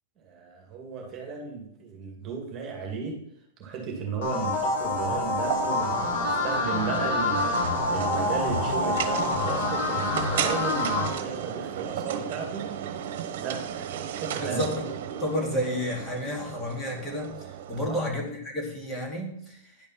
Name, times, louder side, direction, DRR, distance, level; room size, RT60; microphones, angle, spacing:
voice 1, 0.2-3.2 3.6-12.7 13.4-14.7 17.8-18.0, right 5 dB, 30° right, 0 dB, 2.4 m, -34 dB
sound 1, 4.2-11.1, left 2 dB, 50° left, 4.2 m, -27 dB
sound 2, 5.4-18.1, right 9 dB, 60° right, 1.2 m, -34 dB
voice 2, 14.4-14.7 15.2-19.6, left 1 dB, 15° left, 0 dB, 2.5 m, -31 dB
10.5 x 5.3 x 5.8 m, 0.72 s
hypercardioid pair, 140°, 0 cm